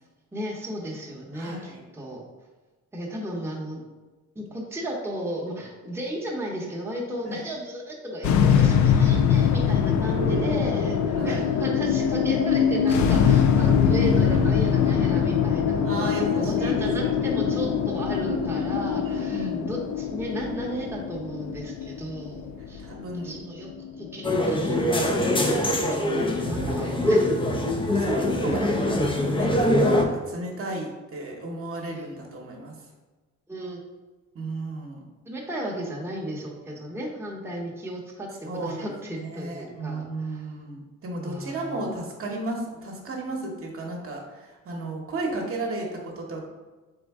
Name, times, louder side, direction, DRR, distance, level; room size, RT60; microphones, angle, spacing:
voice 1, 0.3-2.2 2.9-3.8 4.3-22.8 23.2-23.7 24.0-25.1 25.5-27.4 28.5-28.6 33.5-33.8 35.3-40.5 41.2-41.9, right 1 dB, 10° right, -3 dB, 0.9 m, -34 dB
voice 2, 1.3-1.8 7.2-7.4 10.2-10.5 11.2-11.5 15.8-17.4 19.1-19.7 22.8-23.4 26.1-26.3 26.7-27.2 27.9-32.7 34.3-35.0 38.4-38.9 39.1-46.4, right 2 dB, 45° right, 0 dB, 0.9 m, -33 dB
sound 1, 8.2-24.6, left 7 dB, 75° left, 0.5 m, -23 dB
sound 2, 24.2-30.1, left 1 dB, 15° left, 0.5 m, -23 dB
3.8 x 3.5 x 3.5 m, 1.2 s
cardioid pair, 90°, 30 cm